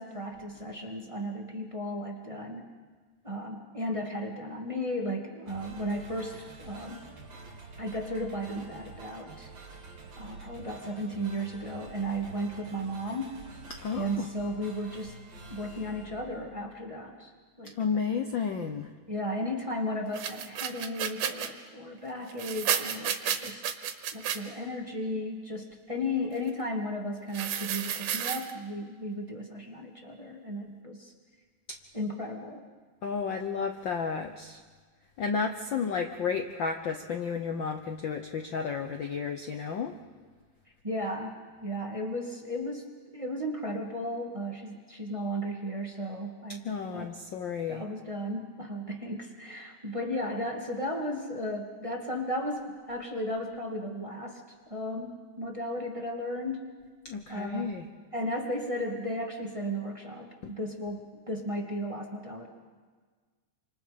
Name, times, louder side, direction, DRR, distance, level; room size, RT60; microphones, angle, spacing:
voice 1, 0.0-2.7 3.2-7.1 7.8-9.5 10.2-13.5 13.9-15.1 15.5-17.3 17.6-17.8 19.1-23.6 24.1-31.1 31.9-32.6 40.8-42.9 43.1-47.1 47.7-54.4 54.7-56.8 57.3-57.7 58.1-62.5, equal, 15° right, 1 dB, 1.6 m, -35 dB
sound 1, 5.5-17.1, right 3 dB, 55° right, 3.9 m, -48 dB
voice 2, 13.8-14.3 17.8-18.9 33.0-34.6 35.2-39.9 46.6-47.8 57.0-57.9 60.4-60.5, left 6 dB, 75° left, 5 dB, 1.0 m, -32 dB
sound 2, 20.1-21.5 22.3-24.4 27.3-28.5, right 9 dB, 90° right, 2.7 m, -31 dB
27.5 x 26.5 x 5.2 m, 1.5 s
omnidirectional pair, 3.5 m